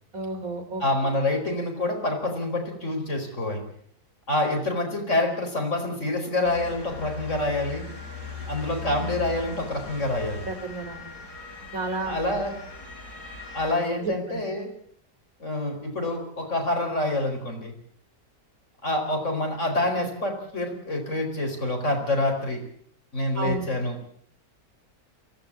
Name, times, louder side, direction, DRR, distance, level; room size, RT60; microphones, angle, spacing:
voice 1, 0.1-1.1 10.4-11.2 11.7-12.2 14.0-14.4 23.4-23.7, right 3 dB, 50° right, 6 dB, 4.1 m, -32 dB
voice 2, 0.8-3.6 4.3-7.8 8.5-10.5 12.1-12.5 13.5-14.7 15.4-17.7 18.8-22.6 23.1-24.0, left 1 dB, 45° left, 3 dB, 5.1 m, -27 dB
Motor vehicle (road) / Siren, 6.4-13.8, left 4 dB, 65° left, 7.2 m, -39 dB
23.5 x 17.0 x 8.7 m, 0.64 s
omnidirectional pair, 1.8 m